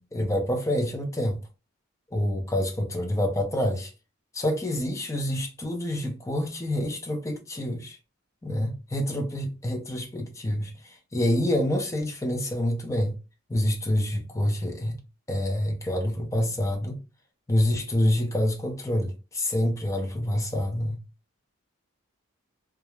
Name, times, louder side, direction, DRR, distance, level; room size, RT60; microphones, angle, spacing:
voice 1, 0.1-1.4 2.1-3.9 4.3-8.0 8.4-13.1 13.5-15.0 15.3-17.0 17.5-21.0, left 1 dB, 15° left, 0.4 m, -27 dB
2.3 x 2.0 x 3.0 m
head